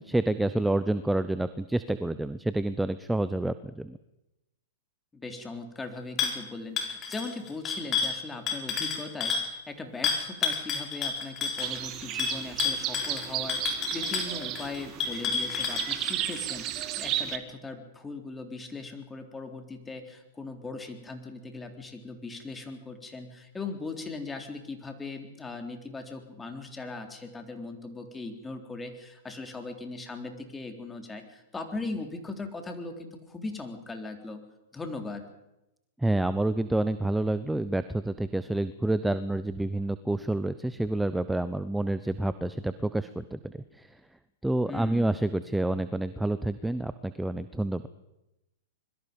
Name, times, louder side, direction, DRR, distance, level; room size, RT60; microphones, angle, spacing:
voice 1, 0.0-4.0 36.0-43.9 44.4-47.9, right 1 dB, 5° right, 13 dB, 0.8 m, -28 dB
voice 2, 5.1-34.4 34.7-35.3 44.7-45.1, left 3 dB, 15° left, 5 dB, 3.6 m, -39 dB
sound 1, 6.2-6.4 6.8-9.5 10.0-16.4, left 6 dB, 30° left, 5.7 m, -30 dB
sound 2, 11.6-17.4, right 12 dB, 40° right, 2.0 m, -34 dB
25.0 x 22.5 x 5.4 m, 0.92 s
hypercardioid pair, 105°, 0 cm